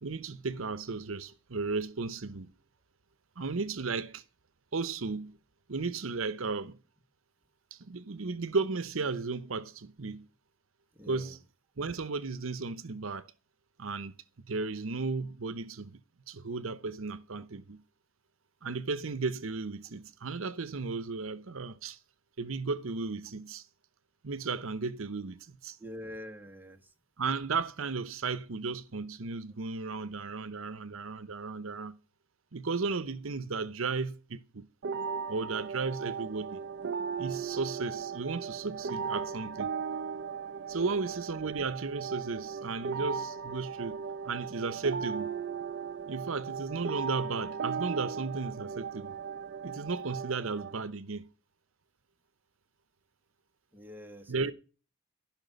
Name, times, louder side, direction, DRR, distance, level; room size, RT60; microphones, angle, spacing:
voice 1, 0.0-2.5 3.4-4.2 4.7-5.4 5.7-6.8 7.7-10.3 11.1-11.4 11.8-13.3 13.8-14.1 14.5-16.0 16.3-17.8 18.6-22.0 22.4-23.6 24.2-25.8 27.2-32.0 32.5-34.7 35.3-36.6 37.2-39.7 40.7-45.4 46.1-49.1 49.6-51.3 54.3-54.5, right 4 dB, 75° right, 0.9 m, -35 dB
voice 2, 11.0-11.3 25.8-26.8 40.8-41.0 53.7-54.5, left 1 dB, 10° right, 1.8 m, -45 dB
sound 1, 34.8-50.8, right 6 dB, 60° right, 0.6 m, -37 dB
15.0 x 6.0 x 9.2 m
head